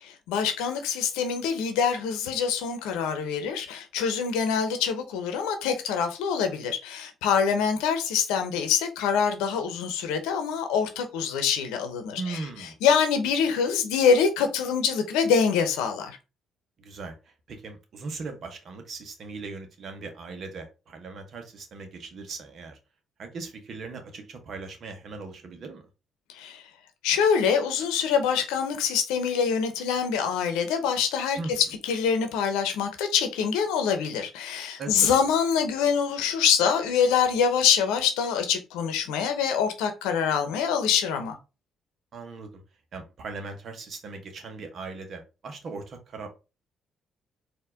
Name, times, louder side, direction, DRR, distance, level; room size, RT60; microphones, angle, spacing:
voice 1, 0.0-16.2 26.3-26.6 27.0-41.4, left 7 dB, 80° left, 0.8 m, -25 dB
voice 2, 12.2-12.7 16.8-17.1 17.5-22.8 23.2-25.8 31.4-31.6 34.8-35.1 42.1-42.6 42.9-46.3, right 3 dB, 60° right, 1.2 m, -39 dB
4.5 x 2.8 x 3.6 m
hypercardioid pair, 50°, 0 cm